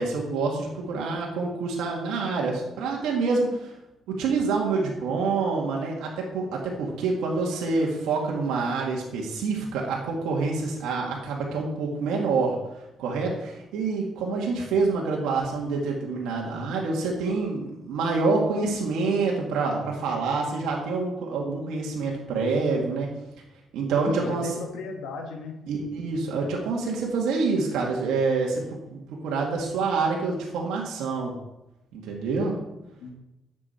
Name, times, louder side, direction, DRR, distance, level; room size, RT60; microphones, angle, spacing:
voice 1, 0.0-3.8 4.1-23.1 23.7-24.5 25.7-31.3 31.9-32.6, right 4 dB, 90° right, -2 dB, 2.0 m, -27 dB
voice 2, 24.0-25.6 33.0-33.1, left 4 dB, 85° left, 3 dB, 2.0 m, -35 dB
10.0 x 7.6 x 4.4 m, 0.93 s
cardioid pair, 90°, 0 cm